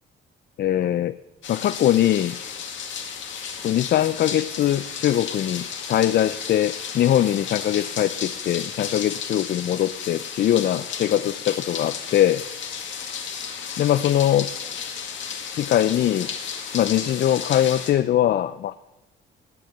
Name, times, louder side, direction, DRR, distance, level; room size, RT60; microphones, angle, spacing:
voice 1, 0.6-1.2 1.5-2.4 3.6-12.4 13.8-14.5 15.5-16.3 16.7-18.7, left 12 dB, 55° left, 14 dB, 0.4 m, -22 dB
sound 1, 1.4-17.9, left 7 dB, 70° left, 1.9 m, -33 dB
18.5 x 6.6 x 6.6 m, 1.1 s
cardioid pair, 90°, 20 cm